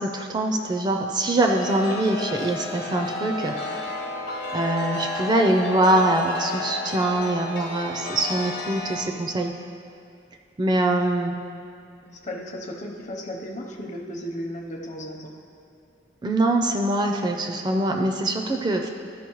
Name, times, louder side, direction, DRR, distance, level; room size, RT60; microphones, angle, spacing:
voice 1, 0.0-3.5 4.5-9.5 10.6-11.3 16.2-18.9, right 1 dB, 25° right, 3 dB, 0.4 m, -23 dB
Chime, 1.4-9.0, left 3 dB, 60° left, 1.1 m, -32 dB
voice 2, 12.0-15.3, equal, 45° left, 2 dB, 0.8 m, -35 dB
13.0 x 5.1 x 3.0 m, 2.4 s
head